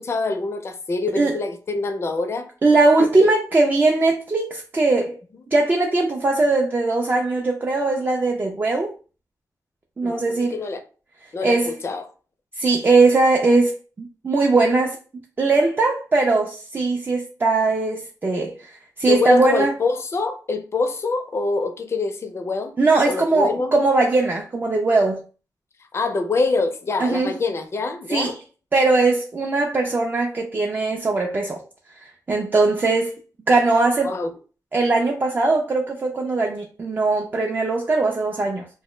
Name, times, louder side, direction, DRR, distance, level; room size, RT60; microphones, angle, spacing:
voice 1, 0.0-2.5 3.2-3.3 10.0-10.2 10.5-10.8 11.3-12.0 19.1-22.7 23.0-23.7 25.9-28.3 34.0-34.3, left 3 dB, 40° left, 0.4 m, -25 dB
voice 2, 2.6-5.2 5.5-8.9 10.0-10.6 11.4-11.7 12.6-15.0 15.4-18.5 19.0-19.7 22.8-25.2 27.0-27.3 28.1-28.3 28.7-31.6 32.3-33.1 33.5-34.1 34.7-38.7, right 3 dB, 30° right, 0.3 m, -20 dB
2.1 x 2.0 x 3.0 m
wide cardioid pair, 115°, 7 cm